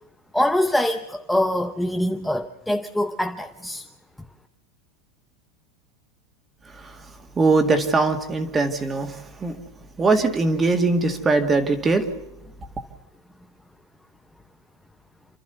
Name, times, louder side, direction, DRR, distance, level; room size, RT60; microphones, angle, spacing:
voice 1, 0.3-3.9, left 1 dB, ahead, 5 dB, 0.7 m, -24 dB
voice 2, 7.4-9.5 10.0-12.1, right 3 dB, 15° right, 6 dB, 1.9 m, -21 dB
29.0 x 13.0 x 6.9 m, 0.96 s
supercardioid pair, 165°, 0 cm